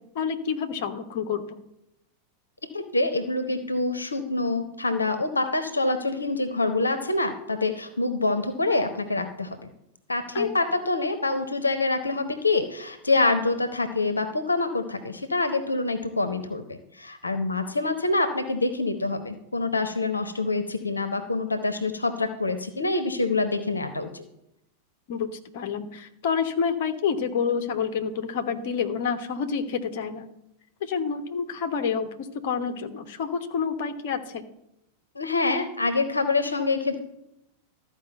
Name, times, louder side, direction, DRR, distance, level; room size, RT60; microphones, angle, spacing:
voice 1, 0.0-1.6 10.3-10.5 25.1-30.3 30.8-34.4, left 6 dB, 50° left, 7 dB, 1.1 m, -28 dB
voice 2, 2.7-9.6 10.1-24.3 35.1-37.0, left 3 dB, 80° left, 9 dB, 0.9 m, -26 dB
13.5 x 5.0 x 7.7 m, 0.83 s
figure-of-eight pair, 90°, 0 cm